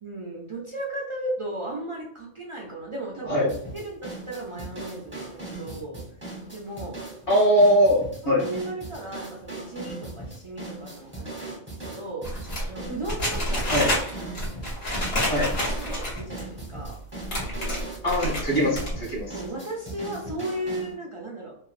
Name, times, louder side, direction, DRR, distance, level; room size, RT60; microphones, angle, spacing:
voice 1, 0.0-3.4 3.7-6.0 6.5-7.0 8.2-13.9 15.2-15.5 15.8-17.0 19.3-21.6, right 1 dB, 50° right, -3 dB, 0.3 m, -35 dB
sound 1, 3.5-20.9, right 2 dB, 10° right, 0.7 m, -39 dB
voice 2, 7.3-8.4 13.7-13.9 15.3-15.5 18.0-19.4, equal, 30° left, -6 dB, 1.1 m, -21 dB
sound 2, 12.2-16.4 16.8-16.9 17.2-18.5 18.8-19.2, equal, 75° left, 1.5 m, -28 dB
3.0 x 2.4 x 2.4 m, 0.67 s
omnidirectional pair, 1.2 m